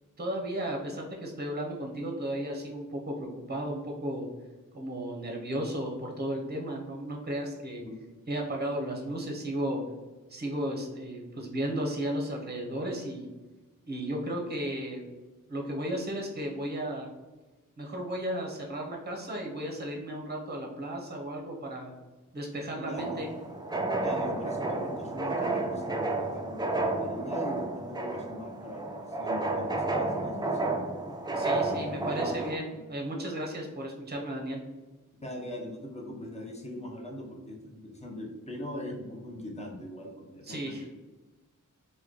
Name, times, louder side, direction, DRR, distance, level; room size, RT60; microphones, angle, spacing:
voice 1, 0.2-4.3 4.7-7.8 8.3-9.8 10.3-13.3 13.8-15.0 15.5-17.1 17.8-21.9 22.3-23.3 31.3-34.6 40.4-40.9, right 1 dB, 30° right, 1 dB, 0.7 m, -34 dB
voice 2, 22.8-23.2 23.8-30.8 31.7-32.3 32.7-32.9 35.2-40.9, left 1 dB, 20° left, 0 dB, 0.7 m, -41 dB
sound 1, 23.0-32.6, right 2 dB, 15° right, 0.3 m, -31 dB
3.1 x 2.2 x 3.7 m, 1.2 s
wide cardioid pair, 80°, 32 cm